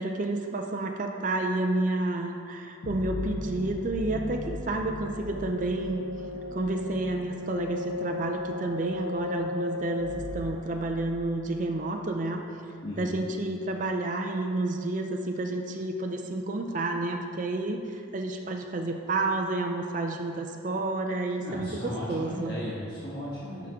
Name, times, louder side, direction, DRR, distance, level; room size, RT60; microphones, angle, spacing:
voice 1, 0.0-6.0 6.5-12.4 13.0-22.6, right 2 dB, 40° right, 3 dB, 0.4 m, -30 dB
sound 1, 2.8-11.5, left 3 dB, 80° left, 0.7 m, -36 dB
voice 2, 12.8-13.1 21.4-23.7, equal, 50° left, -9 dB, 1.4 m, -36 dB
11.5 x 5.0 x 3.6 m, 2.5 s
head